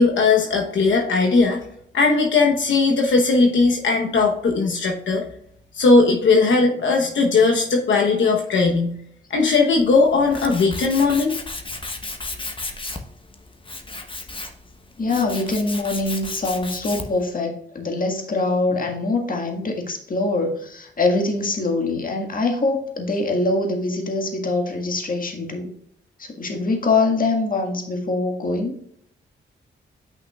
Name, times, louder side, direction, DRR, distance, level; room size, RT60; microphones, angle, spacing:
voice 1, 0.0-1.6 1.9-5.2 5.7-9.0 9.3-11.3, left 4 dB, 80° left, 1 dB, 1.0 m, -18 dB
Tools, 9.8-17.3, left 2 dB, 25° left, 1.1 m, -34 dB
voice 2, 15.0-25.7 26.2-28.8, left 3 dB, 45° left, 2 dB, 1.7 m, -23 dB
9.1 x 5.7 x 2.4 m, 0.69 s
cardioid pair, 75°, 19 cm